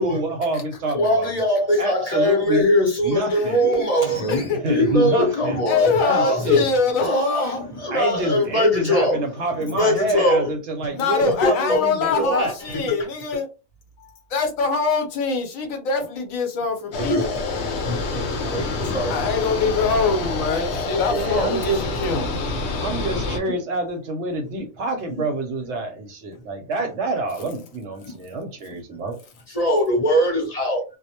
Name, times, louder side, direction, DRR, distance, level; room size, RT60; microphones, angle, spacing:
voice 1, 0.0-1.3 1.8-2.6 3.0-3.6 4.6-5.6 6.1-6.6 7.9-12.5 21.1-21.8 22.8-29.2, right 2 dB, 65° right, 0.8 m, -27 dB
voice 2, 0.9-6.7 7.0-9.2 9.6-10.5 11.2-12.9 17.0-17.4 17.9-19.7 20.9-21.0 22.2-22.3 23.1-23.2 24.6-24.7 25.1-25.3 28.0-28.1 29.5-30.8, equal, 35° left, 0.6 m, -22 dB
voice 3, 3.3-3.9 4.3-4.8 5.7-7.2 8.3-8.4 10.9-13.5 14.0-17.2 19.1-22.3, left 4 dB, 80° left, 1.1 m, -24 dB
sound 1, 16.9-23.4, left 3 dB, 60° left, 0.8 m, -27 dB
2.2 x 2.0 x 2.8 m
omnidirectional pair, 1.4 m